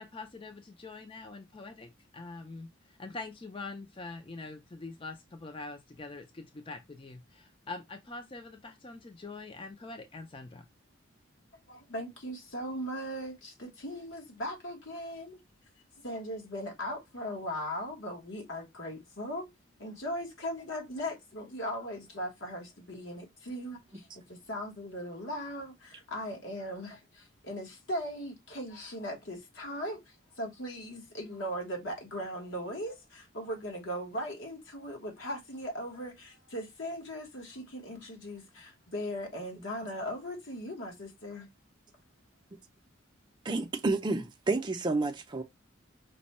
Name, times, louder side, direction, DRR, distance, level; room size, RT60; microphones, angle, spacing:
voice 1, 0.0-10.6, left 3 dB, 25° left, 0.5 m, -44 dB
voice 2, 11.7-15.4 16.0-19.5 19.8-41.5, equal, 70° left, 1.3 m, -39 dB
voice 3, 43.4-45.4, right 3 dB, 25° right, 0.5 m, -30 dB
5.2 x 2.2 x 4.1 m
head